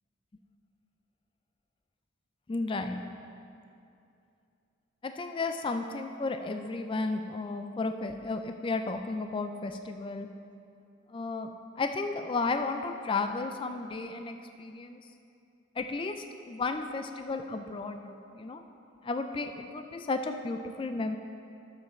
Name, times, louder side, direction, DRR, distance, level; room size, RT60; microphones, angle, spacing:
voice 1, 2.5-3.0 5.0-10.3 11.1-11.5 11.8-15.0 15.8-18.6 19.0-21.2, left 3 dB, 25° left, 6 dB, 0.3 m, -33 dB
13.0 x 7.2 x 3.1 m, 2.6 s
head